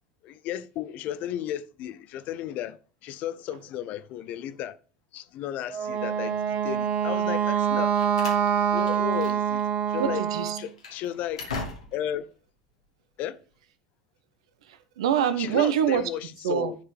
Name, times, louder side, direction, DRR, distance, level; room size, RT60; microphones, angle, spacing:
voice 1, 0.2-4.8 5.1-8.0 8.7-10.2 10.6-11.5 11.9-12.3 13.2-13.4 15.4-16.8, left 11 dB, 50° left, 0.7 m, -34 dB
Wind instrument woodwind instrument, 5.7-10.6, right 8 dB, 45° right, 1.0 m, -25 dB
Slam, 7.6-9.6 9.9-10.1 10.6-12.2, left 3 dB, 85° left, 2.0 m, -39 dB
voice 2, 10.0-10.6 14.6-16.1 16.4-16.7, right 9 dB, 70° right, 1.0 m, -25 dB
10.5 x 4.8 x 4.8 m
figure-of-eight pair, 75°, 3 cm